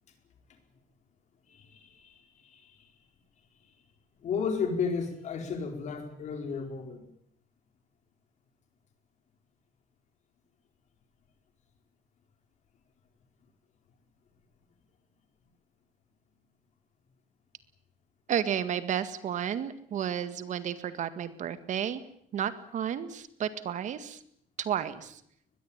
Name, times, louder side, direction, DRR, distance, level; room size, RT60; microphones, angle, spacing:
voice 1, 1.5-2.9 4.2-7.0, left 5 dB, 55° left, 6 dB, 4.8 m, -33 dB
voice 2, 18.3-22.0 22.3-24.2 24.6-25.2, right 9 dB, 55° right, 12 dB, 1.9 m, -32 dB
23.0 x 21.0 x 8.9 m, 0.67 s
cardioid pair, 165°, 15 cm